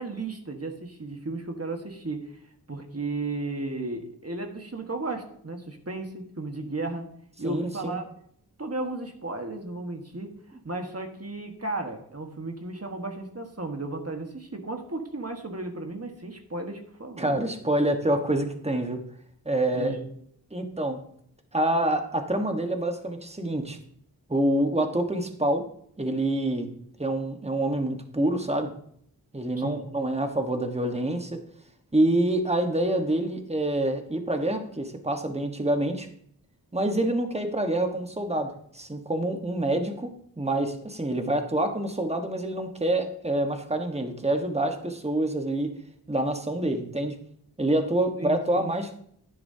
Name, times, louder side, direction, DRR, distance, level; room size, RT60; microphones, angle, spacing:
voice 1, 0.0-7.1 7.4-8.1 8.6-17.4 19.7-20.1 29.6-29.9 48.2-48.7, right 2 dB, 40° right, 4 dB, 1.5 m, -34 dB
voice 2, 7.4-8.0 17.2-19.0 19.4-20.0 20.5-21.0 21.5-23.8 24.3-25.6 26.0-26.7 27.0-28.7 29.3-31.4 31.9-36.1 36.7-45.7 46.1-47.2 47.6-48.9, right 1 dB, 15° right, 5 dB, 1.4 m, -26 dB
11.0 x 10.0 x 2.8 m, 0.65 s
wide cardioid pair, 60°, 39 cm